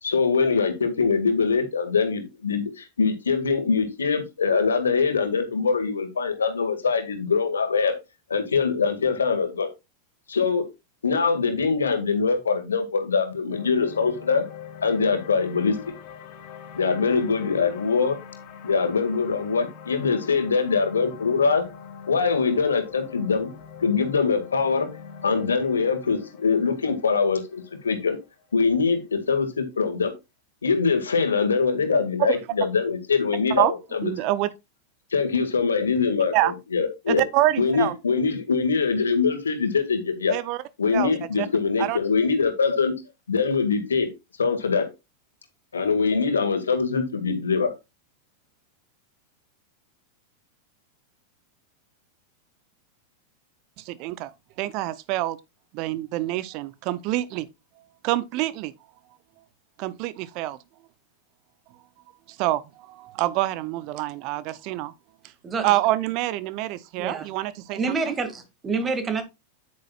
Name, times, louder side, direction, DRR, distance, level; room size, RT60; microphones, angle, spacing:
voice 1, 0.0-7.9 8.3-9.7 10.3-10.7 11.0-14.4 14.8-15.8 16.8-18.2 18.6-21.6 22.1-23.5 23.8-24.9 25.2-28.2 28.5-30.1 30.6-34.1 35.1-37.2 37.6-40.4 40.8-42.9 43.3-44.1 44.4-44.9 45.7-47.7, left 5 dB, 70° left, 1.9 m, -23 dB
sound 1, 13.5-29.8, left 7 dB, 45° left, 2.1 m, -44 dB
voice 2, 34.0-34.5 36.3-36.5 37.1-37.9 40.3-40.6 40.9-41.1 41.4-41.5 41.8-42.0 53.8-54.3 54.6-55.4 55.7-57.5 58.0-58.7 59.8-60.6 62.4-64.9 65.6-67.8 68.1-68.2, right 16 dB, 45° right, 0.6 m, -26 dB
voice 3, 67.0-67.3 67.7-69.2, right 4 dB, 20° right, 2.1 m, -27 dB
9.4 x 8.9 x 2.4 m
figure-of-eight pair, 90°, 0 cm